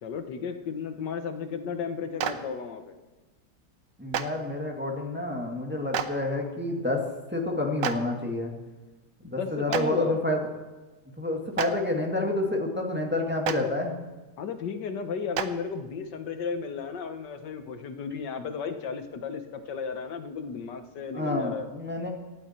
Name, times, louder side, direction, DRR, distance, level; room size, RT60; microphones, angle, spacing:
voice 1, 0.0-3.0 9.2-10.2 14.4-21.7, left 6 dB, 80° left, 7 dB, 1.7 m, -34 dB
Clapping, 2.2-2.3 4.1-4.2 5.9-6.0 7.8-7.9 9.7-9.8 11.5-11.7 13.4-13.5 15.3-15.4, right 9 dB, 85° right, 1.5 m, -27 dB
voice 2, 4.0-7.0 7.3-8.5 9.2-10.4 11.2-13.9 21.1-22.1, left 2 dB, 5° right, 0 dB, 1.7 m, -28 dB
18.0 x 12.5 x 4.4 m, 1.2 s
omnidirectional pair, 1.9 m